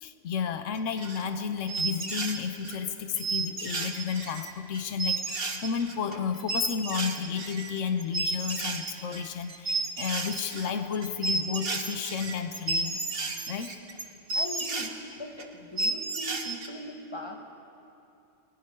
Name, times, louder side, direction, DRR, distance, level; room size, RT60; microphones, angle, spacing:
voice 1, 0.0-13.0 13.5-13.7, left 7 dB, 65° left, 8 dB, 1.3 m, -32 dB
sound 1, 0.7-1.4 1.7-2.8 3.2-14.9 15.4-15.5 15.8-16.7, right 3 dB, 45° right, 1.5 m, -32 dB
voice 2, 14.3-17.4, left 1 dB, 20° left, 2 dB, 1.9 m, -40 dB
29.5 x 20.0 x 4.7 m, 2.7 s
omnidirectional pair, 1.4 m